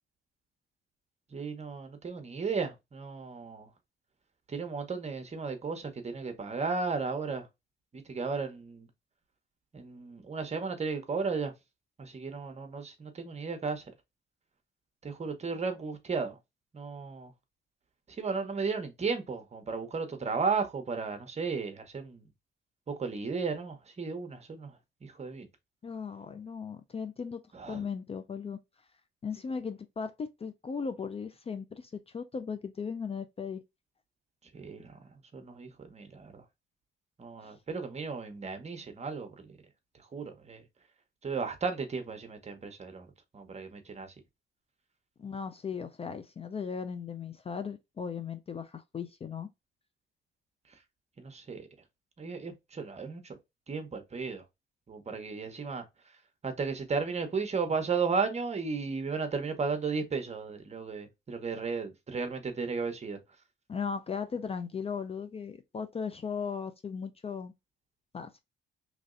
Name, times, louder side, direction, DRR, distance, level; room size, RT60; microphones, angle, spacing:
voice 1, 1.3-3.7 4.5-7.5 7.9-8.9 9.7-11.5 12.0-13.8 15.0-16.4 16.7-17.3 18.1-22.3 22.9-25.5 27.5-27.9 34.5-35.0 35.3-36.4 37.2-39.6 39.9-40.6 41.2-43.1 43.3-44.1 51.2-51.7 52.2-53.4 53.7-54.4 54.9-55.9 56.4-63.2, right 4 dB, 35° right, 1.0 m, -34 dB
voice 2, 25.8-27.4 27.7-28.6 29.2-33.6 37.4-37.5 45.2-49.5 63.7-67.5 68.1-68.4, left 6 dB, 30° left, 0.4 m, -37 dB
3.1 x 2.6 x 3.7 m
cardioid pair, 90°, 20 cm